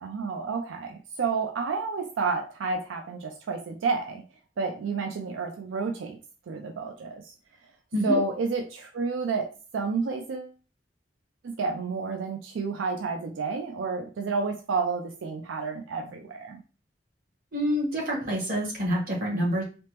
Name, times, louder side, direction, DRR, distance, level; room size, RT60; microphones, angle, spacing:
voice 1, 0.0-4.2 4.6-6.2 6.5-7.3 8.0-9.5 9.7-10.5 11.4-16.6, right 4 dB, 90° right, 3 dB, 0.4 m, -30 dB
voice 2, 17.5-19.6, equal, 45° right, -3 dB, 1.1 m, -27 dB
3.3 x 2.0 x 2.9 m, 0.35 s
head